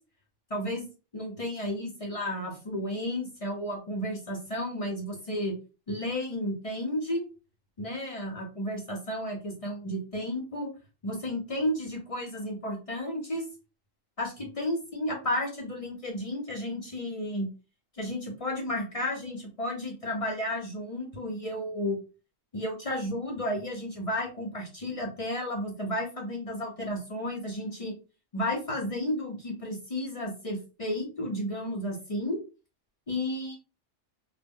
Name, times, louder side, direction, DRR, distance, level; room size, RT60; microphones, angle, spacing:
voice 1, 0.5-0.8 1.1-5.5 5.9-7.3 7.8-10.7 11.0-13.4 14.2-17.5 18.0-22.0 22.5-27.9 28.3-32.4 33.1-33.5, left 1 dB, 40° left, 0 dB, 0.5 m, -32 dB
2.1 x 2.0 x 3.5 m, 0.32 s
omnidirectional pair, 1.3 m